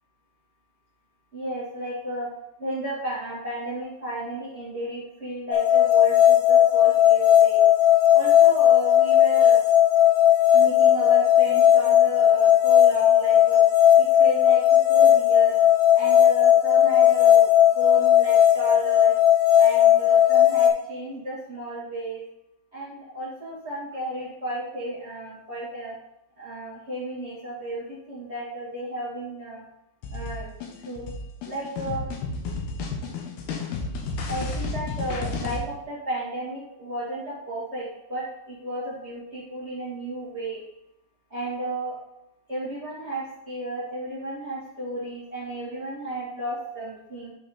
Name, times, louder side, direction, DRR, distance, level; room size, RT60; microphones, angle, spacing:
voice 1, 1.3-2.3 2.6-7.6 8.1-9.6 10.5-13.7 14.0-15.6 15.9-19.1 19.5-22.2 22.7-25.9 26.3-29.6 30.1-31.1 31.4-32.1 34.3-40.6 41.3-41.9 42.5-47.3, right 1 dB, 65° right, -9 dB, 0.6 m, -33 dB
sound 1, 5.5-20.7, left 10 dB, 50° left, 1.9 m, -17 dB
sound 2, 30.0-35.6, left 3 dB, 70° left, 2.9 m, -32 dB
10.5 x 5.2 x 4.3 m, 0.84 s
omnidirectional pair, 5.0 m